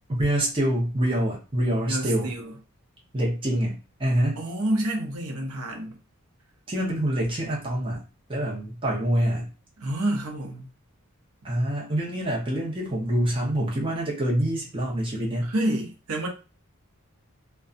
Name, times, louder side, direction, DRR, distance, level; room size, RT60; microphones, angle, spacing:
voice 1, 0.1-2.3 3.1-4.4 6.7-8.0 8.3-9.5 11.4-15.5, right 1 dB, 25° right, 0.7 m, -26 dB
voice 2, 1.9-2.5 4.4-6.0 9.8-10.7 15.4-16.3, right 1 dB, 80° right, 0.7 m, -28 dB
2.6 x 2.2 x 2.4 m
head